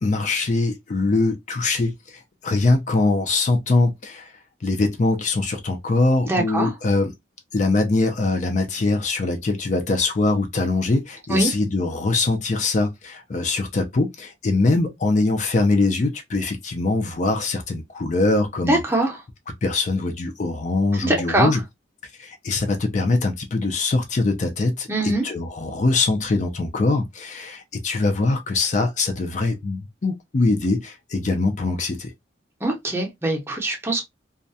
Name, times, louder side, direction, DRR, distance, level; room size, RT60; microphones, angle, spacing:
voice 1, 0.0-1.9 2.4-4.3 4.6-7.1 7.5-18.8 19.6-21.6 22.2-32.1, left 3 dB, 45° left, 0.4 m, -22 dB
voice 2, 6.2-6.7 11.3-11.5 18.7-19.2 21.0-21.5 24.9-25.2 32.6-34.0, right 1 dB, 15° right, 0.7 m, -22 dB
2.3 x 2.1 x 2.6 m
head